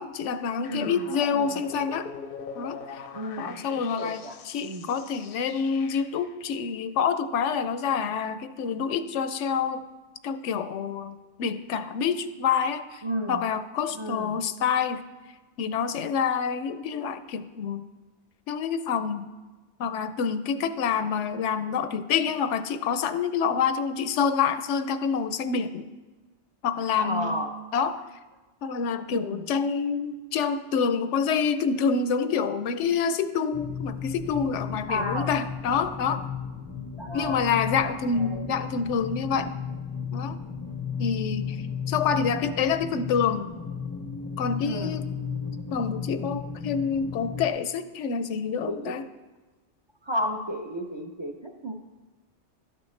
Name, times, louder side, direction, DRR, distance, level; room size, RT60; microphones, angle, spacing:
voice 1, 0.0-2.1 2.6-3.1 3.4-9.9 10.2-13.0 13.3-15.0 15.6-17.8 18.5-19.3 19.8-25.9 26.6-27.4 27.7-28.1 28.6-36.3 37.1-39.5 40.1-40.4 41.0-43.5 44.4-45.0 45.7-49.0, left 6 dB, 85° left, 11 dB, 0.9 m, -27 dB
sound 1, 0.6-6.3, left 6 dB, 60° left, 0.7 m, -42 dB
voice 2, 0.7-1.0 1.3-1.6 3.1-4.4 4.6-4.9 13.0-13.4 13.9-14.4 27.0-27.5 29.1-29.4 34.9-35.3 37.0-37.5 37.8-38.4 44.6-45.0 48.7-49.0 50.0-51.7, equal, 35° right, 3 dB, 0.5 m, -33 dB
sound 2, 33.5-47.5, left 6 dB, 25° left, 0.4 m, -34 dB
12.5 x 7.7 x 3.2 m, 1.2 s
omnidirectional pair, 1.2 m